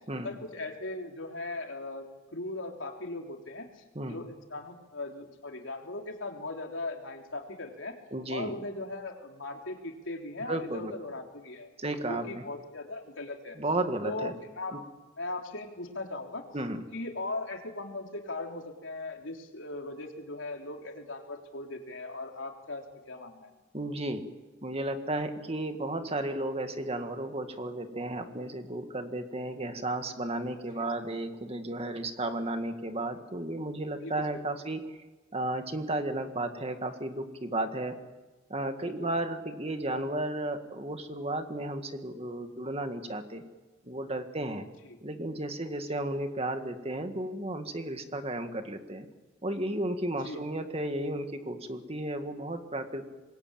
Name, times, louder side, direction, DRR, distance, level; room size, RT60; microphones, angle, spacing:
voice 1, 0.2-8.0 8.3-11.7 12.1-13.6 14.0-14.8 15.2-16.4 16.9-23.5 30.8-30.9 34.0-34.5 38.8-39.1 44.8-45.0 50.2-50.4, left 2 dB, 80° left, 3 dB, 3.6 m, -39 dB
voice 2, 8.1-8.5 10.5-10.9 11.8-12.4 13.6-14.3 14.7-14.8 16.5-16.8 23.7-24.2 24.6-35.0 35.3-38.0 38.5-43.4 43.8-44.7 45.0-49.1 49.4-53.1, right 1 dB, 30° right, 7 dB, 2.0 m, -33 dB
26.0 x 21.5 x 9.0 m, 1.2 s
head